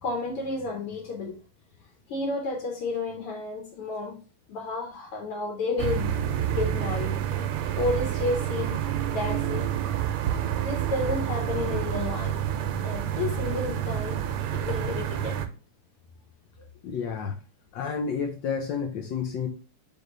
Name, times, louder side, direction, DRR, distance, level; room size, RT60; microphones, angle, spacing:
voice 1, 0.0-1.4 2.1-4.2 4.5-6.1 6.5-7.2 7.8-8.8 9.1-9.7 10.6-12.4 12.8-14.2 14.5-15.4, left 3 dB, 90° left, 1 dB, 1.9 m, -31 dB
sound 1, 5.8-15.5, right 10 dB, 85° right, 1.5 m, -28 dB
voice 2, 16.8-17.4 17.7-19.5, left 6 dB, 70° left, 4 dB, 1.2 m, -30 dB
3.9 x 3.6 x 3.7 m, 0.35 s
omnidirectional pair, 2.4 m